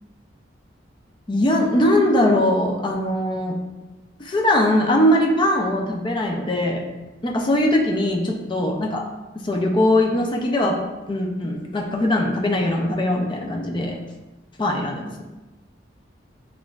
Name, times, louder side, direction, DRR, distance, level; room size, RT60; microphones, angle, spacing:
voice 1, 1.3-3.6 4.2-6.8 7.2-9.0 9.4-10.8 11.1-14.0 14.6-15.2, left 1 dB, 25° left, 1 dB, 0.4 m, -21 dB
6.1 x 2.5 x 2.3 m, 1.1 s
head